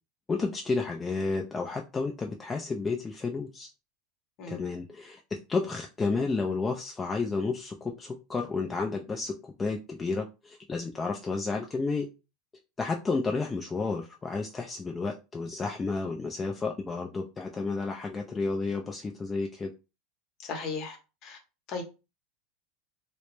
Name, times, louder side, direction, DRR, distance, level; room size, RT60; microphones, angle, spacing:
voice 1, 0.3-3.7 4.5-12.1 12.8-19.7, left 4 dB, 20° left, 2 dB, 0.3 m, -31 dB
voice 2, 20.4-21.0 21.2-21.4 21.7-21.8, left 4 dB, 50° left, 4 dB, 0.8 m, -35 dB
2.1 x 2.0 x 3.0 m, 0.29 s
hypercardioid pair, 105°, 0 cm